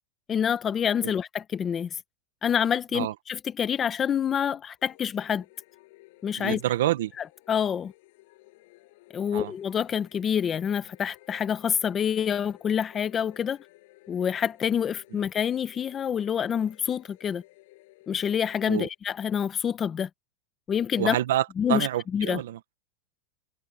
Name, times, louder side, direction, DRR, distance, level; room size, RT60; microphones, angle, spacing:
voice 1, 0.3-1.9 2.4-5.4 6.2-6.6 7.5-7.9 9.1-13.6 14.1-17.4 18.1-20.1 20.7-21.2 21.6-22.4, left 8 dB, 25° left, 1.3 m, -27 dB
Astral Choir, 4.8-19.0, left 21 dB, 65° left, 7.7 m, -55 dB
voice 2, 6.4-7.1 9.3-9.5 18.7-18.9 21.0-22.6, right 13 dB, 85° right, 1.4 m, -27 dB
supercardioid pair, 145°, 0 cm